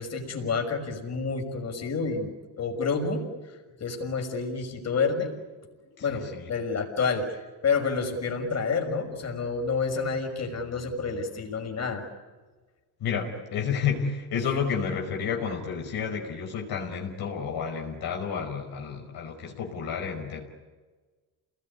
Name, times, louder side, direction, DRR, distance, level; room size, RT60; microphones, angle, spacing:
voice 1, 0.0-5.3 6.0-12.0, left 4 dB, 40° left, 2 dB, 6.1 m, -29 dB
voice 2, 6.0-6.4 13.0-20.4, left 6 dB, 70° left, 1 dB, 5.3 m, -31 dB
29.0 x 20.0 x 9.9 m, 1.3 s
cardioid pair, 115°, 39 cm